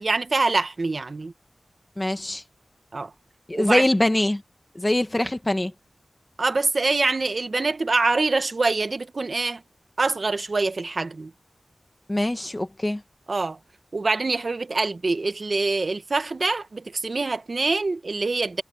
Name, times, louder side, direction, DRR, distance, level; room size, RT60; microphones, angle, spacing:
voice 1, 0.0-1.3 2.9-3.1 3.5-3.9 6.4-9.6 10.0-11.3 13.3-13.6 13.9-18.6, right 3 dB, 55° right, 1.3 m, -25 dB
voice 2, 2.0-2.4 3.5-4.4 4.8-5.7 12.1-13.0, left 1 dB, 20° left, 1.8 m, -23 dB
wide cardioid pair, 70°, 0 cm